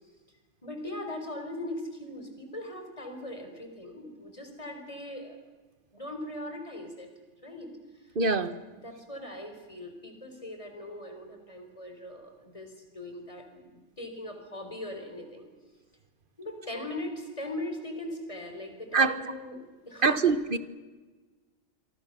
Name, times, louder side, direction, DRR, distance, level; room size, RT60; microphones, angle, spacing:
voice 1, 0.6-5.4 5.9-7.1 7.4-7.7 8.3-8.4 8.7-15.5 16.4-19.6 19.9-20.2, left 1 dB, 25° left, 4 dB, 4.7 m, -40 dB
voice 2, 8.1-8.5 18.9-19.1 20.0-20.6, right 4 dB, 45° right, 12 dB, 1.5 m, -23 dB
27.0 x 23.5 x 6.9 m, 1.3 s
omnidirectional pair, 1.3 m